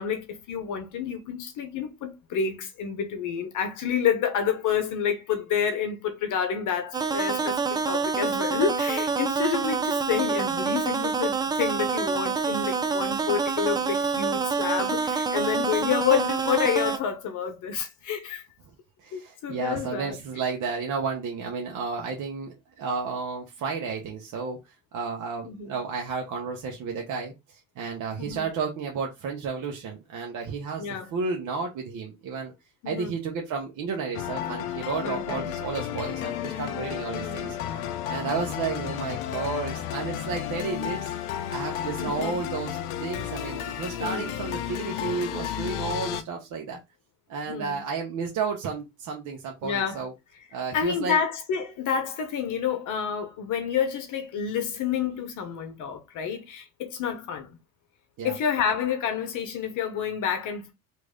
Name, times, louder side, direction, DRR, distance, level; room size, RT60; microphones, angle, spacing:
voice 1, 0.0-18.5 19.1-20.2 25.4-25.8 28.2-28.5 30.8-31.1 32.8-33.1 35.0-35.4 37.1-37.5 42.0-42.4 44.0-44.3 47.5-47.8 49.6-50.1 50.7-57.6 58.2-60.7, left 7 dB, 50° left, 0.9 m, -29 dB
sound 1, 6.9-17.0, right 5 dB, 10° right, 0.3 m, -27 dB
voice 2, 19.0-24.6 24.9-30.9 31.1-32.5 32.9-37.6 38.1-41.1 41.5-46.8 47.3-50.1 50.5-51.2 58.2-58.4, right 5 dB, 45° right, 0.9 m, -32 dB
sound 2, 34.1-46.2, left 11 dB, 80° left, 0.7 m, -32 dB
3.1 x 2.6 x 3.5 m
hypercardioid pair, 85°, 41 cm